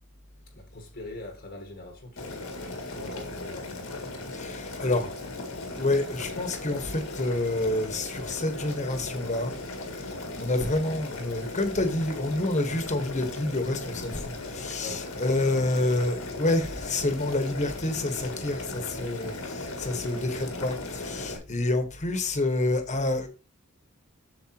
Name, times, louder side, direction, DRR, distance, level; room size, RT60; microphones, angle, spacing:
voice 1, 0.6-2.4 2.9-3.8 14.8-15.1, left 2 dB, 50° left, 1.3 m, -42 dB
Boiling, 2.2-21.4, left 2 dB, 75° left, 1.7 m, -37 dB
voice 2, 4.3-5.4 5.7-9.5 10.0-23.3, left 2 dB, 35° left, 1.2 m, -28 dB
7.7 x 6.8 x 2.9 m
head